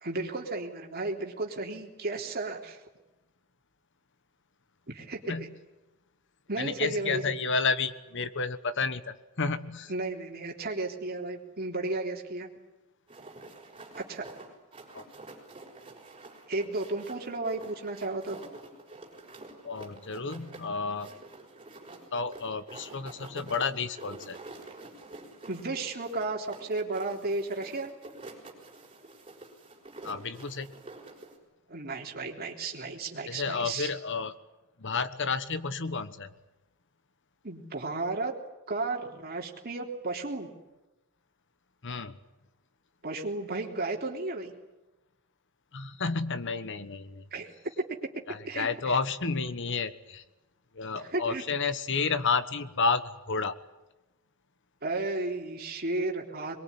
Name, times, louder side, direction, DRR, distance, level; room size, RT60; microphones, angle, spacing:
voice 1, 0.0-2.8 4.9-5.5 6.5-7.3 9.9-12.5 14.0-14.2 16.5-18.4 25.5-27.9 31.7-33.9 37.4-38.3 38.7-40.5 43.0-44.5 47.3-47.5 48.5-49.0 50.9-51.4 54.8-56.6, right 2 dB, 45° right, 1 dB, 3.6 m, -33 dB
voice 2, 6.6-9.9 14.9-15.0 19.6-21.1 22.1-24.4 30.0-30.7 33.3-34.4 34.8-36.3 41.8-42.2 45.7-47.2 48.3-50.2 50.7-53.5, left 4 dB, 55° left, 12 dB, 1.3 m, -31 dB
sound 1, 13.1-31.4, right 2 dB, 25° right, 5.9 m, -48 dB
23.0 x 22.5 x 9.8 m, 1.0 s
head